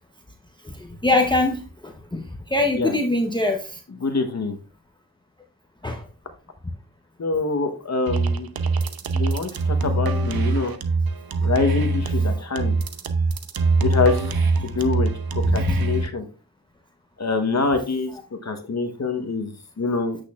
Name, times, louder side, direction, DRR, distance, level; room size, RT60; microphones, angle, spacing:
voice 1, 1.0-2.2 2.5-3.8 5.8-6.0 9.5-9.6 15.4-15.8, left 2 dB, 10° left, 1 dB, 0.8 m, -23 dB
voice 2, 4.0-4.6 7.2-8.5 9.1-10.7 11.4-12.7 13.8-14.4 14.6-15.1 15.5-16.3 17.2-18.1 18.4-20.2, left 3 dB, 45° left, 7 dB, 1.1 m, -25 dB
sound 1, 8.1-16.1, right 3 dB, 65° right, 0.8 m, -23 dB
8.3 x 6.3 x 2.4 m, 0.35 s
cardioid pair, 65°, 39 cm